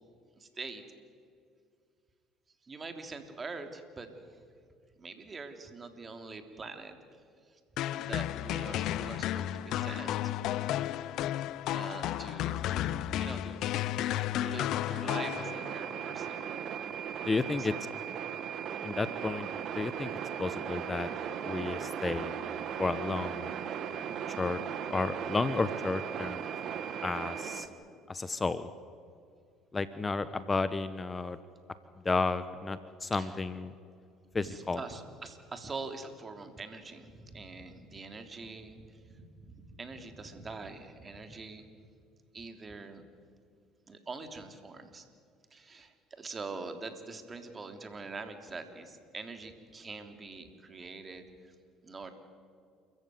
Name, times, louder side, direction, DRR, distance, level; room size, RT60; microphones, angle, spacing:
voice 1, 0.4-0.8 2.6-4.1 5.0-7.0 7.5-7.6 7.9-10.2 11.7-12.7 13.1-13.8 14.4-16.5 17.3-17.8 33.1-33.4 34.4-41.6 42.3-43.0 43.9-45.0 45.5-51.5 51.8-52.1, right 3 dB, 30° right, 6 dB, 3.3 m, -44 dB
sound 1, 7.8-15.9, left 12 dB, 65° left, 0.7 m, -33 dB
sound 2, 15.1-27.7, right 8 dB, 60° right, 2.0 m, -37 dB
voice 2, 17.2-17.7 18.8-19.5 19.7-20.1 20.4-21.1 21.4-22.3 22.8-23.5 24.4-24.6 24.9-26.4 27.0-27.7 28.1-28.7 29.7-31.4 32.0-33.7 34.3-34.8, left 3 dB, 25° left, 13 dB, 1.0 m, -32 dB
29.0 x 14.5 x 9.5 m, 2.2 s
hypercardioid pair, 70°, 0 cm